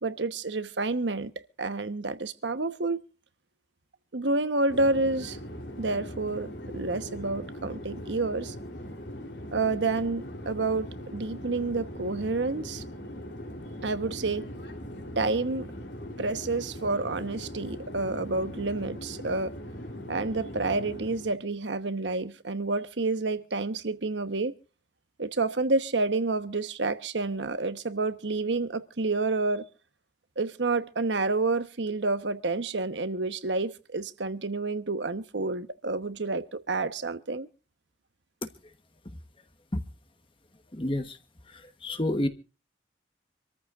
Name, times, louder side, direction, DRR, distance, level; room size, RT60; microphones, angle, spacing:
voice 1, 0.0-1.3 1.6-3.0 4.1-5.4 5.8-8.5 9.5-12.8 13.8-14.5 15.2-15.7 16.2-19.5 20.1-24.5 25.2-29.6 30.4-37.5, right 3 dB, 75° right, 1.1 m, -29 dB
Conversation / Chatter / Fixed-wing aircraft airplane, 4.7-21.4, equal, 70° left, 3.3 m, -40 dB
voice 2, 40.7-41.2 41.5-42.3, left 1 dB, 30° left, 1.1 m, -29 dB
26.5 x 14.0 x 2.5 m
head